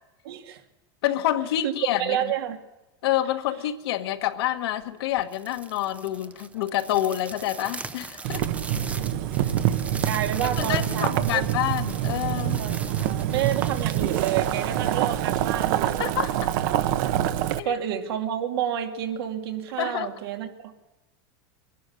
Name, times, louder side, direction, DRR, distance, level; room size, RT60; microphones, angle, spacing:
voice 1, 0.2-0.6 1.6-1.7 2.0-2.6 9.9-11.4 12.6-16.1 17.6-20.8, right 10 dB, 75° right, 5 dB, 2.5 m, -29 dB
voice 2, 1.0-2.2 3.0-8.5 10.6-12.6 16.0-16.3 17.6-17.7 19.8-20.1, left 13 dB, 75° left, 5 dB, 1.5 m, -27 dB
sound 1, 5.2-15.5, right 3 dB, 10° right, 0.7 m, -40 dB
Boiling, 8.2-17.6, right 11 dB, 60° right, 1.0 m, -26 dB
23.0 x 12.0 x 9.6 m, 1.1 s
supercardioid pair, 145°, 13 cm